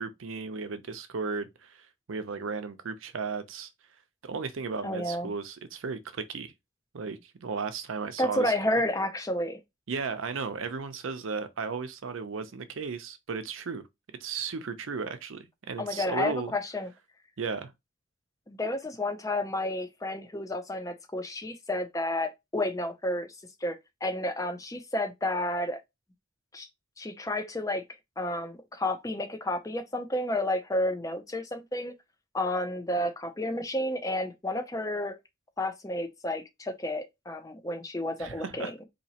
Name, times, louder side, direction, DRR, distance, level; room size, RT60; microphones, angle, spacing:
voice 1, 0.0-3.7 4.2-6.5 6.9-8.5 9.9-13.9 14.2-16.5 17.4-17.7 38.2-38.7, right 5 dB, 85° right, 0.6 m, -35 dB
voice 2, 4.8-5.3 8.2-9.6 15.8-16.9 18.5-23.3 23.6-25.8 26.5-26.7 27.0-27.8 28.2-31.9 32.3-35.2 35.6-38.7, left 1 dB, 15° left, 0.5 m, -31 dB
4.1 x 2.8 x 2.8 m
head